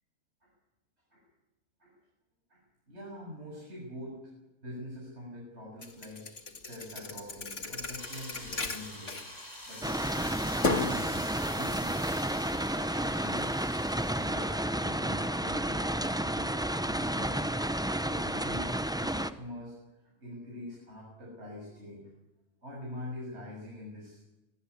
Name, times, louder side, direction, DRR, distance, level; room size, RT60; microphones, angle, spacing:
voice 1, 2.5-4.3 4.6-9.4 9.7-13.6 14.1-17.6 18.0-22.1 22.6-24.2, left 1 dB, 65° right, -2 dB, 7.4 m, -45 dB
Thump thud, 5.8-9.8 10.2-11.0, left 3 dB, 90° left, 2.3 m, -35 dB
sound 1, 8.0-16.6, left 1 dB, 35° left, 4.9 m, -47 dB
sound 2, 9.8-19.3, right 1 dB, 5° right, 0.5 m, -31 dB
24.5 x 18.5 x 8.4 m, 1.0 s
omnidirectional pair, 1.2 m